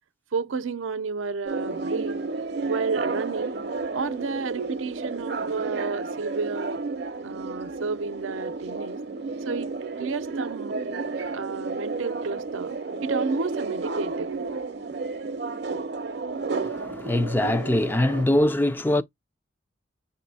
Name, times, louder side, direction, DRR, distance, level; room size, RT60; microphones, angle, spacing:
voice 1, 0.3-2.2 2.6-3.5 3.9-6.8 7.2-9.0 9.4-9.7 10.0-10.8 11.3-12.7 13.0-14.3, right 4 dB, 90° right, 0.6 m, -31 dB
sound 1, 1.5-18.3, right 3 dB, 55° right, 0.7 m, -31 dB
voice 2, 16.6-19.0, left 1 dB, 10° left, 0.3 m, -23 dB
6.8 x 2.7 x 2.6 m
head